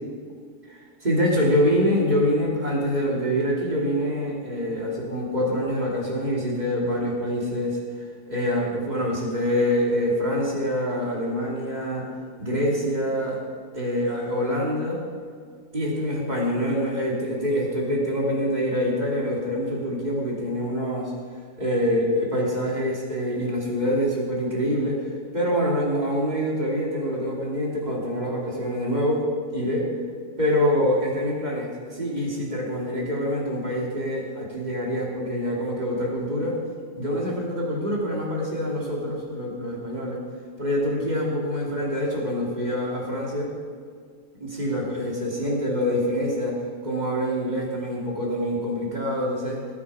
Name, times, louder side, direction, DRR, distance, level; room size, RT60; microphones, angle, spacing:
voice 1, 0.7-12.1 12.4-13.4 13.7-15.0 15.7-21.1 21.6-29.3 29.5-29.9 30.4-36.6 37.0-40.2 40.6-43.5 44.4-49.6, equal, 30° right, -3 dB, 3.0 m, -25 dB
20.0 x 8.6 x 5.0 m, 2.1 s
omnidirectional pair, 1.6 m